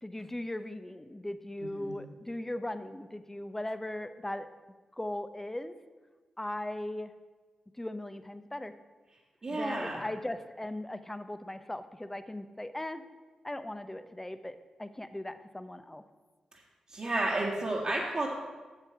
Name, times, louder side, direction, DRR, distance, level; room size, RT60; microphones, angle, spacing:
voice 1, 0.0-4.5 4.9-5.7 6.4-7.1 7.8-8.7 9.5-13.0 13.4-16.0, left 1 dB, 15° left, 11 dB, 0.7 m, -38 dB
voice 2, 1.6-2.0 9.4-10.1 16.9-18.3, right 2 dB, 50° right, -6 dB, 1.7 m, -32 dB
8.1 x 6.9 x 5.8 m, 1.3 s
supercardioid pair, 45°, 2 cm